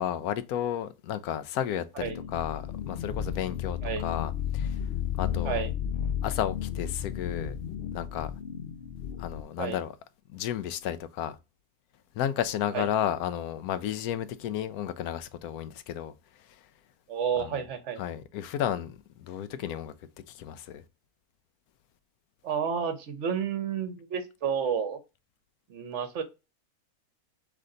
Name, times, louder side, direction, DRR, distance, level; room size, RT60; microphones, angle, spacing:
voice 1, 0.0-4.8 5.2-5.6 6.2-7.5 7.9-8.3 9.2-9.9 10.3-11.4 12.2-16.1 17.4-17.6 18.0-19.9 20.3-20.8, left 10 dB, 80° left, 1.0 m, -32 dB
sound 1, 2.0-9.4, left 9 dB, 60° left, 0.7 m, -33 dB
voice 2, 17.1-18.0 22.4-25.0 25.7-26.2, right 7 dB, 55° right, 1.0 m, -30 dB
3.8 x 3.3 x 3.8 m
omnidirectional pair, 1.6 m